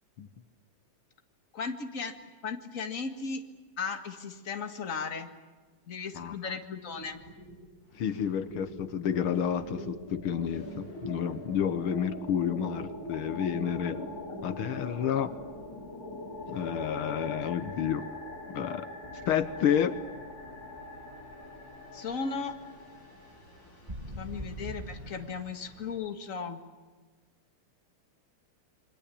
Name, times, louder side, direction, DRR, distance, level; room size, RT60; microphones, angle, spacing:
voice 1, 1.5-2.2 2.4-3.4 3.8-5.3 5.9-7.2 21.9-22.5 24.2-26.6, left 5 dB, 40° left, 6 dB, 2.1 m, -36 dB
voice 2, 6.1-6.5 7.9-14.0 14.4-15.3 16.5-18.1 18.5-18.9 19.3-20.0, left 8 dB, 85° left, 12 dB, 1.9 m, -30 dB
sound 1, 6.8-7.6 7.9-26.0, left 1 dB, 60° left, 8.1 m, -43 dB
sound 2, 19.0-21.8 22.1-22.3 23.9-25.1, right 1 dB, 20° right, 2.3 m, -44 dB
28.0 x 23.0 x 8.5 m, 1.4 s
omnidirectional pair, 2.3 m